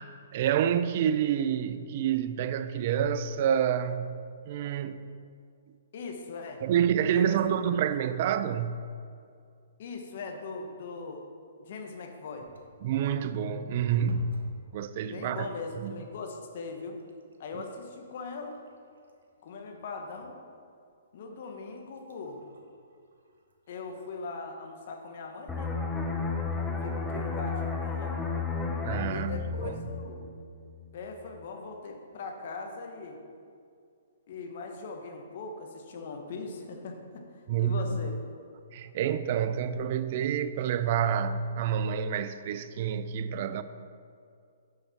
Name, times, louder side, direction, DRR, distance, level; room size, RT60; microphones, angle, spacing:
voice 1, 0.0-4.2 4.5-5.0 6.6-8.8 12.8-14.4 14.7-15.5 15.8-16.0 17.5-17.6 28.8-29.7 37.5-37.9 38.7-43.6, right 8 dB, 50° right, 0.3 m, -28 dB
voice 2, 5.9-6.6 7.1-7.4 9.8-11.2 11.6-12.5 15.1-17.0 17.4-18.6 19.4-20.4 21.1-22.5 23.7-25.8 26.8-28.3 29.1-30.3 30.9-33.2 34.3-38.1, left 4 dB, 55° left, 1.0 m, -40 dB
Drinks being poured, 12.4-12.8 13.7-14.6 15.0-15.5 16.2-16.3 16.7-20.3 20.8-20.9 21.6-24.3 26.5-27.0 27.7-27.8 28.1-28.2, left 1 dB, 80° right, 0.9 m, -53 dB
sound 1, 25.5-30.9 31.2-31.4, left 4 dB, 10° left, 0.6 m, -33 dB
6.5 x 5.9 x 4.2 m
hypercardioid pair, 135°, 0 cm